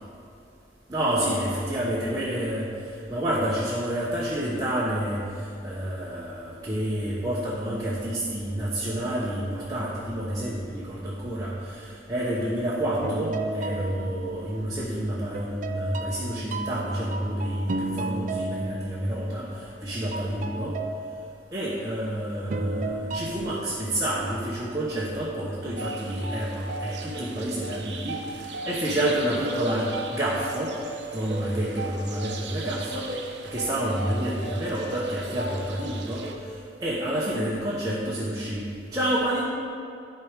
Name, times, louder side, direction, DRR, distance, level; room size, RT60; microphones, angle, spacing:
voice 1, 0.9-20.8 21.5-30.7 31.1-33.1 33.5-39.4, right 1 dB, 20° right, -7 dB, 1.0 m, -29 dB
sound 1, 13.0-14.9 15.3-19.8 20.1-22.0 22.5-23.7, right 2 dB, 45° right, 0.4 m, -34 dB
sound 2, 25.8-36.4, right 3 dB, 75° right, 0.9 m, -36 dB
12.0 x 4.7 x 5.1 m, 2.6 s
head